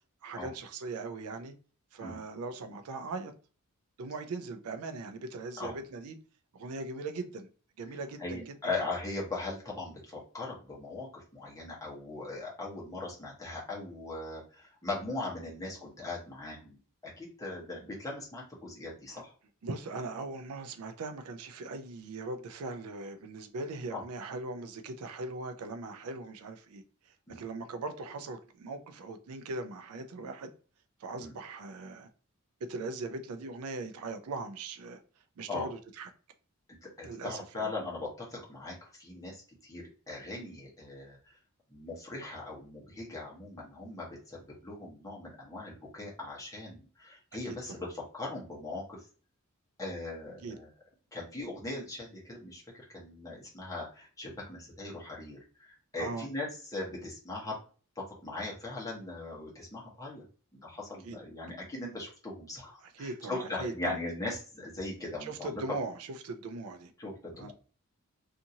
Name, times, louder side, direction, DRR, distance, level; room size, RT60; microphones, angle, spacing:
voice 1, 0.2-1.5 1.9-3.3 4.0-6.2 6.5-7.5 7.8-8.5 19.1-19.2 19.6-30.5 31.0-32.1 32.6-35.0 35.4-36.1 37.0-37.7 47.7-47.8 50.4-50.6 56.0-56.3 61.0-61.2 62.8-63.9 65.2-65.9 66.2-66.9 67.4-67.5, right 3 dB, 80° right, 0.4 m, -40 dB
voice 2, 8.2-16.8 17.0-19.3 23.9-24.0 27.3-27.4 31.2-31.3 35.5-35.7 36.8-41.4 41.7-49.0 49.8-50.7 51.1-57.6 58.0-60.2 60.6-65.6 67.0-67.5, left 2 dB, 15° left, 1.0 m, -39 dB
2.7 x 2.5 x 2.7 m
head